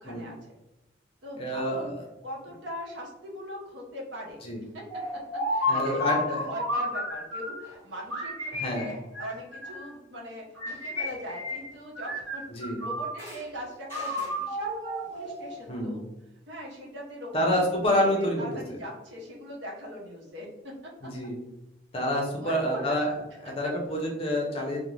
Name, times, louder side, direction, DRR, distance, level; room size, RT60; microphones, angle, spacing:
voice 1, 0.0-0.6 1.2-1.9 2.2-4.4 4.7-4.8 5.5-16.0 16.5-17.6 17.9-20.5 21.0-21.1 22.3-23.0, equal, 70° right, -2 dB, 0.7 m, -40 dB
voice 2, 1.4-2.0 4.4-4.6 5.7-6.5 8.5-8.9 12.5-12.8 15.7-16.0 17.3-18.5 21.0-21.4 21.9-23.1 23.4-24.8, equal, 30° left, 0 dB, 0.5 m, -27 dB
sound 1, 4.9-7.7 8.1-9.9 10.6-11.7 12.0-13.4 13.9-15.7, left 1 dB, 15° right, 1.2 m, -32 dB
2.5 x 2.0 x 3.0 m, 0.95 s
head